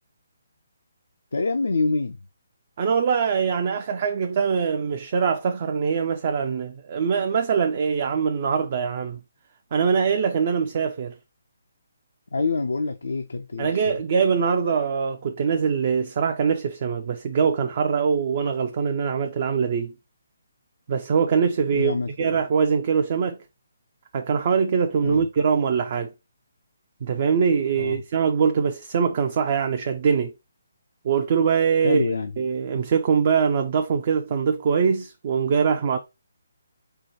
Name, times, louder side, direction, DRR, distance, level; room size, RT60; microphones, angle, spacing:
voice 1, 1.3-2.2 12.3-14.0 21.7-22.4 25.0-25.3 27.8-28.0 31.8-32.3, left 3 dB, 70° left, 0.4 m, -26 dB
voice 2, 2.8-9.2 9.7-11.1 13.6-19.9 20.9-23.4 24.1-26.1 27.0-30.3 31.0-32.1 32.4-36.0, right 6 dB, 40° right, 0.4 m, -23 dB
4.5 x 2.2 x 4.3 m
figure-of-eight pair, 140°, 0 cm